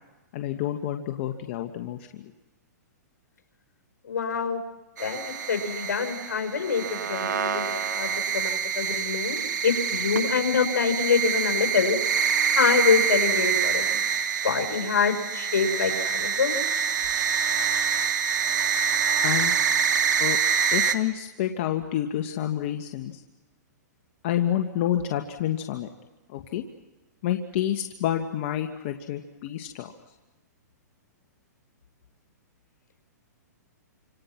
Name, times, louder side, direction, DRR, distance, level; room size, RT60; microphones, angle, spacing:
voice 1, 0.3-2.0 19.2-19.5 20.2-20.4 20.7-23.1 24.2-25.9 26.3-26.6 27.2-29.9, left 11 dB, 45° left, 5 dB, 1.8 m, -28 dB
voice 2, 4.0-4.6 5.0-12.0 12.5-14.0 14.4-16.6, left 6 dB, 80° left, 6 dB, 5.5 m, -25 dB
sound 1, 5.0-20.9, right 7 dB, 80° right, 2.1 m, -26 dB
29.5 x 26.5 x 6.1 m, 1.1 s
hypercardioid pair, 145°, 10 cm